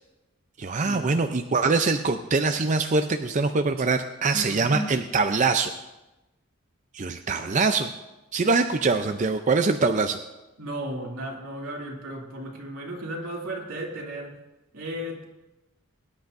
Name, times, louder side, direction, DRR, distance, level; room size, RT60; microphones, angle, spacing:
voice 1, 0.6-5.7 6.9-7.9 8.3-10.2, right 4 dB, 35° right, 7 dB, 0.5 m, -23 dB
voice 2, 4.3-4.9 10.6-14.4 14.7-15.2, right 1 dB, 85° right, -1 dB, 2.6 m, -34 dB
22.0 x 10.5 x 2.6 m, 1.0 s
head